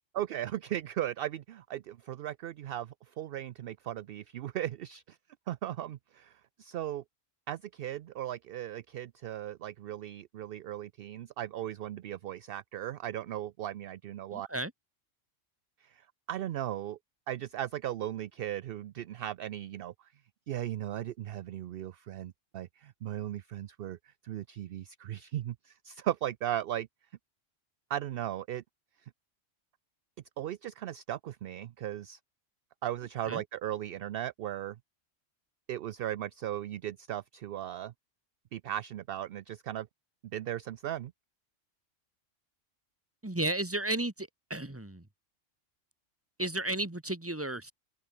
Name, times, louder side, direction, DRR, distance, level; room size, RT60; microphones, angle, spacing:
voice 1, 0.1-5.2 5.5-7.0 7.5-14.5 15.8-17.0 17.3-20.1 20.5-26.9 27.9-28.6 30.4-32.2 32.8-34.8 35.7-37.9 38.5-39.9 40.3-41.1, right 12 dB, 60° right, 0.6 m, -37 dB
voice 2, 14.3-14.7 33.3-33.4 43.2-45.0 46.4-47.7, right 1 dB, 10° right, 1.8 m, -33 dB
omnidirectional pair, 1.3 m